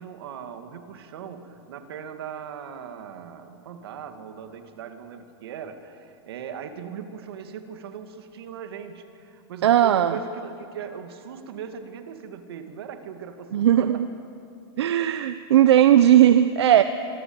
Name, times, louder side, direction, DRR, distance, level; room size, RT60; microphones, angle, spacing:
voice 1, 0.0-14.0, right 7 dB, 65° right, 7 dB, 2.5 m, -39 dB
voice 2, 9.6-10.2 13.5-14.1 14.8-16.8, right 11 dB, 85° right, 11 dB, 0.9 m, -17 dB
25.5 x 23.5 x 8.1 m, 2.7 s
supercardioid pair, 170°, 14 cm